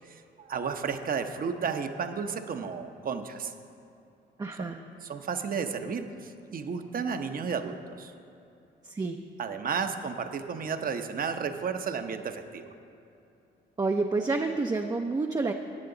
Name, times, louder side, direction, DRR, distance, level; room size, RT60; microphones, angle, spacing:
voice 1, 0.4-3.5 4.6-4.7 5.0-8.1 9.4-12.7, right 6 dB, 45° right, 7 dB, 0.8 m, -32 dB
voice 2, 4.4-4.8 8.8-9.2 13.8-15.5, right 3 dB, 20° right, 3 dB, 0.5 m, -29 dB
15.0 x 8.9 x 3.9 m, 2.7 s
cardioid pair, 90°, 20 cm